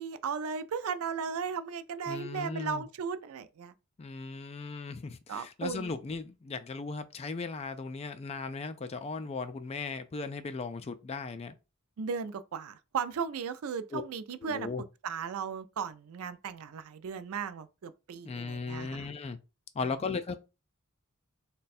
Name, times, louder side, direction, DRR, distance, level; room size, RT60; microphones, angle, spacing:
voice 1, 0.0-3.7 5.3-5.9 12.0-14.7 15.0-19.1, right 6 dB, 85° right, 0.4 m, -36 dB
voice 2, 2.1-2.8 4.0-11.6 13.9-14.0 14.4-14.8 18.2-19.4 19.7-20.3, left 4 dB, 30° left, 0.3 m, -37 dB
3.3 x 2.2 x 4.1 m
head